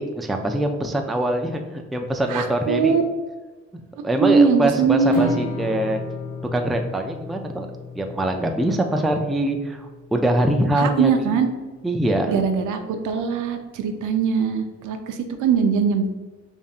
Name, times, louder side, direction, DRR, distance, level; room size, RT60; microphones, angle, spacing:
voice 1, 0.0-2.9 3.7-6.0 6.5-7.7 7.9-11.3 11.8-12.4, right 1 dB, ahead, 4 dB, 0.3 m, -23 dB
voice 2, 2.3-3.0 4.2-5.3 10.8-11.5 12.3-16.1, right 5 dB, 80° right, 6 dB, 0.6 m, -21 dB
Strum, 5.1-11.4, left 3 dB, 70° left, 0.8 m, -35 dB
5.2 x 2.6 x 2.4 m, 1.3 s
cardioid pair, 90°, 30 cm